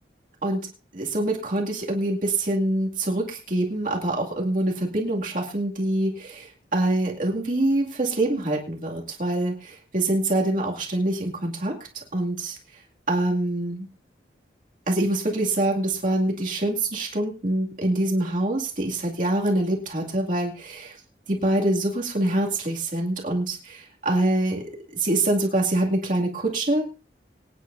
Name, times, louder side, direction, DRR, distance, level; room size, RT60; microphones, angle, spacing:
voice 1, 0.9-11.7 12.1-12.6 13.1-13.9 14.9-21.0 21.3-24.6 24.9-26.8, right 1 dB, 45° right, -1 dB, 2.3 m, -25 dB
24.5 x 9.6 x 2.6 m, 0.32 s
head